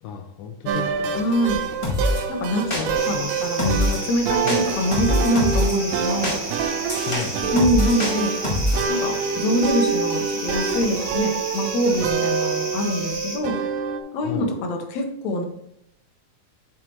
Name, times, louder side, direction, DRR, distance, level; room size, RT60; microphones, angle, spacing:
voice 1, 0.0-1.2 2.8-3.4 4.4-4.7 7.0-7.8 14.2-14.5, left 7 dB, 85° left, 5 dB, 2.4 m, -33 dB
sound 1, 0.7-14.0, right 6 dB, 85° right, 2.3 m, -27 dB
voice 2, 1.1-1.6 2.3-2.7 3.1-6.4 7.5-8.3 8.9-13.6 14.1-15.5, equal, 65° left, 3 dB, 2.3 m, -24 dB
sound 2, 1.8-2.2 2.7-3.2 3.6-4.0 4.5-5.7 6.2-8.9, left 1 dB, 30° left, 0.5 m, -24 dB
sound 3, 2.9-13.4, right 1 dB, 40° right, 2.9 m, -33 dB
7.5 x 6.5 x 3.0 m, 0.73 s
omnidirectional pair, 3.8 m